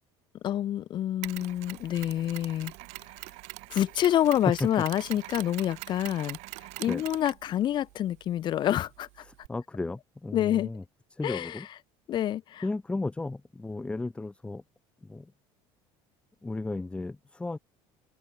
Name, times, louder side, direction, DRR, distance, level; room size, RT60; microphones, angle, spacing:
voice 1, 0.4-2.7 3.7-6.4 6.8-9.1 10.3-10.7 11.2-11.6 12.1-12.6, left 11 dB, 40° left, 1.7 m, -27 dB
Mechanisms, 1.2-9.5, right 26 dB, 70° right, 7.0 m, -44 dB
voice 2, 9.2-10.8 11.1-11.7 12.6-14.6 15.0-15.3 16.4-17.6, left 2 dB, 10° left, 1.5 m, -34 dB
open air
cardioid pair, 145°, 12 cm